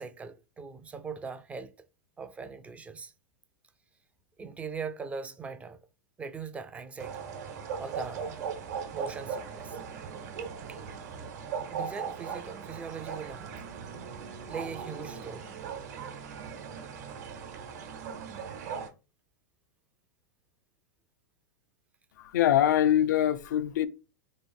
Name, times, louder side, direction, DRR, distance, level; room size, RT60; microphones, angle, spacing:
voice 1, 0.0-1.7 2.2-3.1 4.4-5.8 6.2-7.2 7.8-8.4 8.9-9.8 10.7-10.8 11.7-13.5 14.5-15.5, right 5 dB, 15° right, 0.3 m, -40 dB
sound 1, 7.0-18.9, right 6 dB, 65° right, 1.0 m, -39 dB
voice 2, 22.2-23.9, left 11 dB, 75° left, 0.4 m, -24 dB
3.0 x 2.6 x 4.3 m
hypercardioid pair, 130°, 10 cm